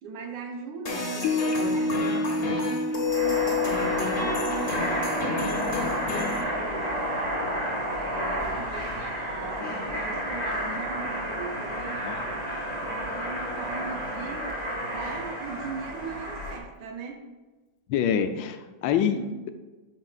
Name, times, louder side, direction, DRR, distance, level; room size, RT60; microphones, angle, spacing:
voice 1, 0.0-7.7 8.0-12.6 12.8-14.6 14.8-17.2 19.2-19.4, right 4 dB, 75° right, 4 dB, 1.6 m, -39 dB
sound 1, 0.9-6.4, left 5 dB, 40° left, 1.1 m, -30 dB
Piano, 1.2-8.0, left 1 dB, 65° left, 0.9 m, -32 dB
sound 2, 2.9-16.6, equal, 25° right, 1.4 m, -31 dB
voice 2, 9.6-10.0 12.0-12.1 17.9-19.2, left 8 dB, 85° left, 8 dB, 1.3 m, -26 dB
12.0 x 4.8 x 2.4 m, 1.2 s
omnidirectional pair, 2.0 m